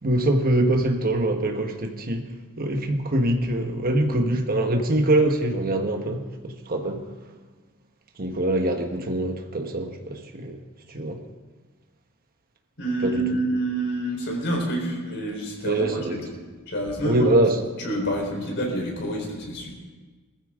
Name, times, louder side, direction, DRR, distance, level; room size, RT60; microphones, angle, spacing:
voice 1, 0.0-2.3 2.6-7.1 8.2-10.6 10.9-11.2 13.0-13.4 15.6-16.2 17.0-17.6, right 1 dB, 45° right, 1.4 m, -24 dB
voice 2, 12.8-16.3 16.7-17.3 17.8-19.8, right 1 dB, 55° left, 4.1 m, -28 dB
19.0 x 14.5 x 3.8 m
head